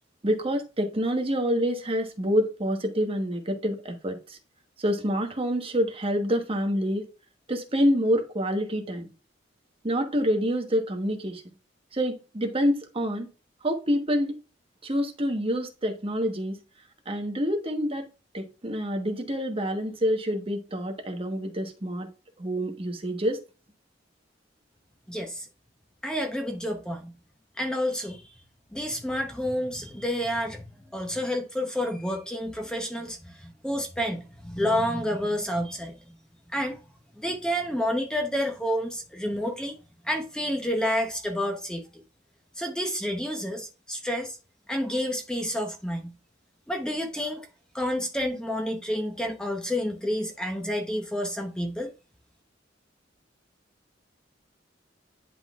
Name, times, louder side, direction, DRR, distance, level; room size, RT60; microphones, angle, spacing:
voice 1, 0.2-4.4 4.8-7.0 7.5-9.1 9.8-11.4 11.9-13.3 13.6-14.4 14.8-16.6 17.1-18.1 18.3-22.1 22.4-23.4, equal, 30° right, 1.2 m, -27 dB
voice 2, 25.1-25.5 26.0-27.1 27.6-28.2 28.7-30.7 30.9-36.0 36.5-36.8 37.2-39.8 40.0-41.8 42.6-44.4 44.7-46.1 46.7-47.5 47.7-51.9, equal, 5° left, 0.8 m, -29 dB
10.5 x 3.8 x 2.4 m
head